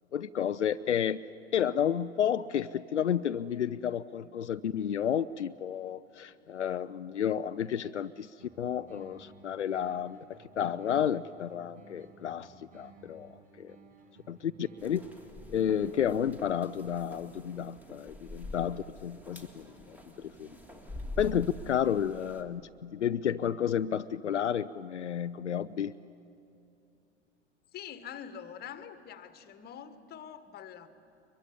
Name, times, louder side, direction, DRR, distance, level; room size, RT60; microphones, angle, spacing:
voice 1, 0.1-1.2 1.5-8.3 8.6-13.3 13.6-13.8 14.3-15.0 15.5-20.5 21.2-25.9, left 9 dB, 75° left, 13 dB, 0.6 m, -31 dB
sound 1, 8.4-16.4, right 3 dB, 25° right, 5.8 m, -56 dB
sound 2, 14.8-22.4, left 1 dB, 5° right, 2.2 m, -46 dB
voice 2, 27.7-30.9, left 8 dB, 25° left, 12 dB, 1.5 m, -45 dB
23.0 x 22.5 x 9.9 m, 2.7 s
figure-of-eight pair, 90°, 35 cm